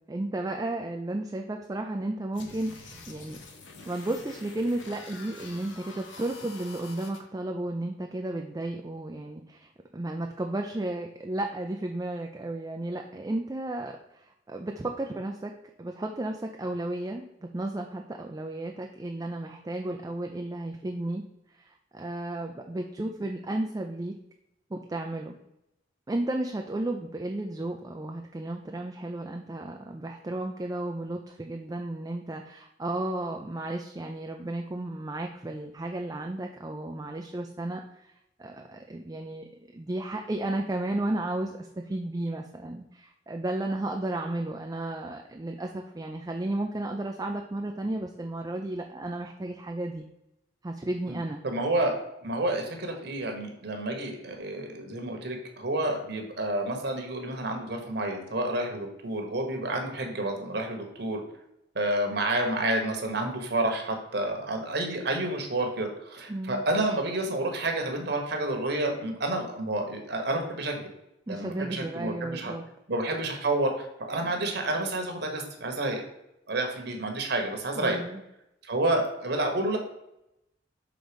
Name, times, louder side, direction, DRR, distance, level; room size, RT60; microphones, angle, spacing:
voice 1, 0.1-3.4 3.9-15.5 15.8-21.2 21.5-24.1 24.7-25.4 26.1-38.1 38.4-50.0 50.6-51.4 66.3-66.6 71.3-72.6 77.8-78.2, right 1 dB, 20° right, 3 dB, 0.4 m, -33 dB
sound 1, 2.3-7.2, left 3 dB, 75° left, 1.1 m, -46 dB
voice 2, 51.4-51.9 52.2-61.2 61.7-70.8 71.3-72.5 72.9-76.0 76.5-78.0 78.6-79.8, right 2 dB, 60° right, 3 dB, 1.3 m, -29 dB
6.2 x 3.8 x 5.2 m, 0.85 s
head